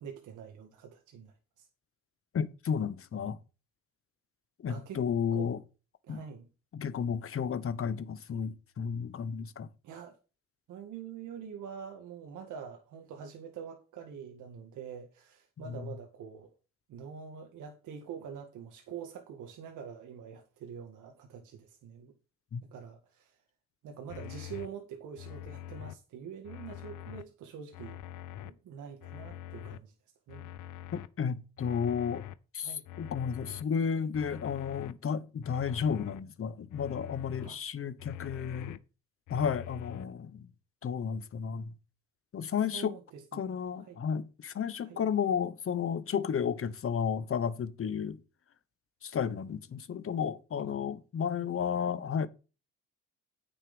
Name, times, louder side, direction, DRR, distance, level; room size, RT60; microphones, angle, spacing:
voice 1, 0.0-1.7 4.7-5.0 5.3-5.5 6.1-6.5 9.8-10.2 10.7-16.5 16.9-22.1 22.6-23.4 23.8-28.0 28.4-29.9 30.3-30.5 32.6-32.8 37.4-37.6 42.7-43.4 43.8-44.0 44.8-45.0 50.7-50.8, right 7 dB, 80° right, 1.9 m, -45 dB
voice 2, 2.3-3.4 4.6-5.6 6.1-6.2 6.7-9.7 15.7-15.9 22.5-22.6 30.9-32.3 32.5-38.7 39.3-40.5 40.8-41.7 42.3-42.9 43.3-48.2 49.0-52.3, left 7 dB, 45° left, 1.2 m, -32 dB
sound 1, 24.1-24.7 25.2-25.9 26.4-27.2 27.7-28.5 29.0-29.8 30.3-31.1 31.6-32.4 32.9-33.6 34.1-34.9 35.4-36.2 36.7-37.5 38.0-38.8 39.3-40.1, left 12 dB, 85° left, 0.7 m, -44 dB
9.2 x 6.6 x 5.3 m
cardioid pair, 90°, 30 cm